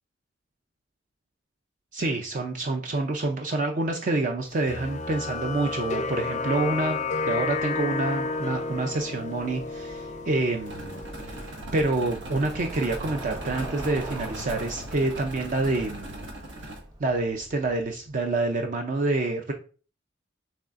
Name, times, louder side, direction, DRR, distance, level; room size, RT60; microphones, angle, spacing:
voice 1, 1.9-7.0 7.3-11.0 11.7-16.3 17.0-19.5, right 2 dB, 45° right, 3 dB, 0.5 m, -27 dB
sound 1, 4.7-11.5, left 3 dB, 40° left, 0.4 m, -31 dB
Bicycle, 7.2-18.1, right 1 dB, 25° right, 0.9 m, -44 dB
sound 2, 10.7-16.8, right 1 dB, 90° right, 1.4 m, -39 dB
6.4 x 3.2 x 2.4 m, 0.38 s
head